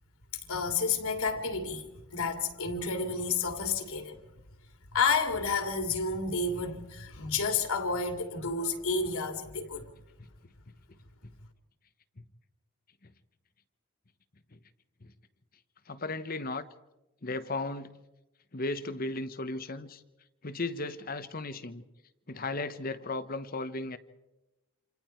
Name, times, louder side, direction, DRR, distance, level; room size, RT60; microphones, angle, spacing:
voice 1, 0.3-4.2 4.9-9.9, left 4 dB, 90° left, 2.7 m, -30 dB
voice 2, 15.9-16.6 17.2-18.0 18.5-20.0 20.4-21.8 22.3-24.0, left 2 dB, 40° left, 1.0 m, -35 dB
28.0 x 27.0 x 4.5 m
head